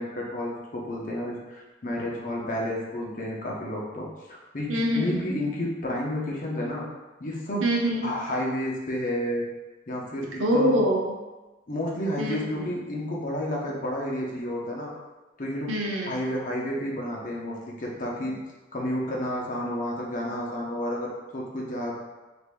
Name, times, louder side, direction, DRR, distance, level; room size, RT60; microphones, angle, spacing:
voice 1, 0.0-6.8 7.2-7.7 8.0-9.5 9.9-10.8 11.7-14.9 15.4-15.7 16.1-18.4 18.7-21.9, left 1 dB, 45° left, -3 dB, 0.8 m, -31 dB
voice 2, 4.7-5.2 7.6-8.1 10.4-11.2 12.2-12.6 15.7-16.1, equal, 85° right, -2 dB, 0.8 m, -24 dB
6.6 x 2.6 x 2.2 m, 1.2 s
head